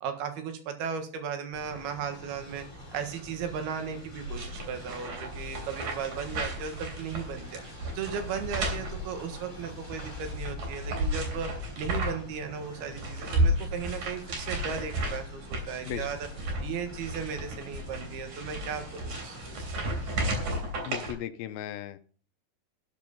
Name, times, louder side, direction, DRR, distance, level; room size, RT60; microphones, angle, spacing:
voice 1, 0.0-2.7 2.9-7.6 8.0-11.5 11.8-16.2 16.6-19.8, right 7 dB, 80° right, 7 dB, 3.5 m, -36 dB
Train, 1.5-20.6, left 2 dB, 5° left, 4.9 m, -45 dB
sound 1, 4.2-12.3 12.6-21.1, right 1 dB, 50° right, 4.4 m, -33 dB
voice 2, 20.8-22.0, left 11 dB, 80° left, 11 dB, 2.4 m, -36 dB
12.5 x 7.8 x 5.3 m, 0.42 s
omnidirectional pair, 4.5 m